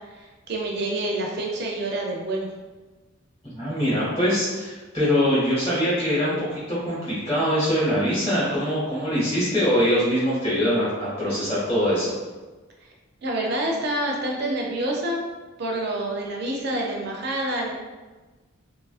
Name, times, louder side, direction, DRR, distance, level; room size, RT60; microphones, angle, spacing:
voice 1, 0.5-2.5 13.2-15.2 15.6-17.7, right 1 dB, 50° right, -1 dB, 0.5 m, -27 dB
voice 2, 3.5-12.1, equal, 25° left, -9 dB, 1.0 m, -23 dB
3.0 x 2.3 x 2.4 m, 1.2 s
head